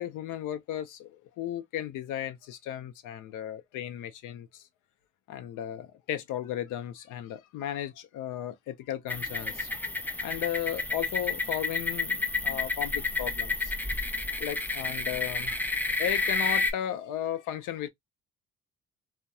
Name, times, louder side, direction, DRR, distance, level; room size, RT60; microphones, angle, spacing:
voice 1, 0.0-4.6 5.3-9.7 10.2-13.7 14.4-15.6 16.0-17.9, left 11 dB, 90° left, 0.5 m, -35 dB
sound 1, 9.1-16.7, left 3 dB, 5° left, 0.4 m, -30 dB
2.8 x 2.1 x 2.2 m
cardioid pair, 90°, 30 cm